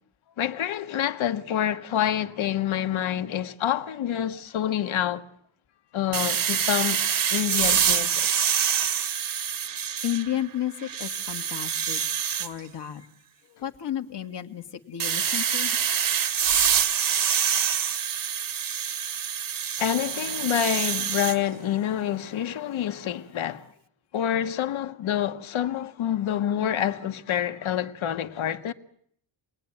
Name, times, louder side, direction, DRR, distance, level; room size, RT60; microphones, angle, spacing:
voice 1, 0.4-5.2 5.9-7.0 7.3-8.3 19.8-23.7 24.1-28.7, left 10 dB, 75° left, 1.6 m, -27 dB
sound 1, 6.1-10.4 10.8-12.5 15.0-21.4, right 8 dB, 45° right, 1.1 m, -26 dB
voice 2, 10.0-12.0 12.4-13.1 13.5-15.8, left 11 dB, 60° left, 1.9 m, -32 dB
29.0 x 20.5 x 10.0 m
wide cardioid pair, 170°, 48 cm